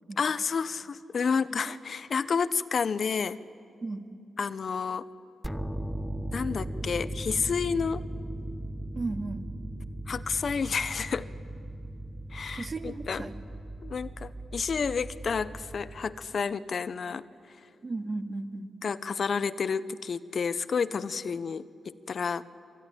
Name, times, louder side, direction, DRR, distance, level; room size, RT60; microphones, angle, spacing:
voice 1, 0.2-3.4 4.4-5.0 6.3-8.0 10.1-11.3 12.3-13.3 13.8-17.6 18.8-22.4, left 5 dB, 55° left, 14 dB, 0.8 m, -30 dB
sound 1, 5.4-16.4, right 1 dB, 5° right, 0.9 m, -38 dB
voice 2, 9.0-9.5 12.5-13.4 17.8-18.7, right 3 dB, 40° right, 5 dB, 2.2 m, -35 dB
25.0 x 24.0 x 9.9 m, 2.6 s
cardioid pair, 65°, 0 cm